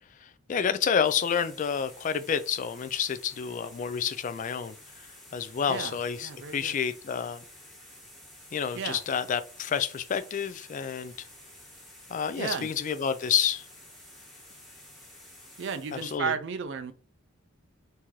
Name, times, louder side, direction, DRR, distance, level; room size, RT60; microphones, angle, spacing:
voice 1, 0.5-4.8 5.3-7.4 8.5-11.1 12.1-13.6 15.9-16.3, left 7 dB, 35° left, 0.3 m, -29 dB
sound 1, 1.0-16.2, left 1 dB, ahead, 1.2 m, -51 dB
voice 2, 6.2-6.7 8.7-9.0 12.4-12.7 15.6-16.9, right 6 dB, 55° right, 0.4 m, -33 dB
3.6 x 2.7 x 3.0 m
head